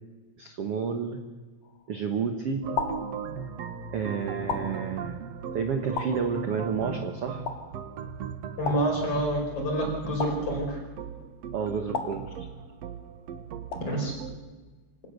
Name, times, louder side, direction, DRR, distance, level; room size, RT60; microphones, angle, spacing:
voice 1, 0.4-1.2 1.9-2.6 3.9-5.1 5.5-7.4 11.5-12.5, right 6 dB, 70° right, 6 dB, 1.4 m, -30 dB
sound 1, 1.6-2.1 2.8-3.7 4.5-5.4 6.0-6.8 7.5-8.1 8.7-9.6 10.2-11.1 11.9-12.9 13.7-14.3, left 5 dB, 65° left, 3.6 m, -36 dB
sound 2, 2.6-14.4, right 7 dB, 85° right, 1.4 m, -38 dB
voice 2, 8.6-10.8 13.9-14.1, equal, 35° left, 0 dB, 6.0 m, -28 dB
25.5 x 17.5 x 6.8 m, 1.3 s
omnidirectional pair, 4.8 m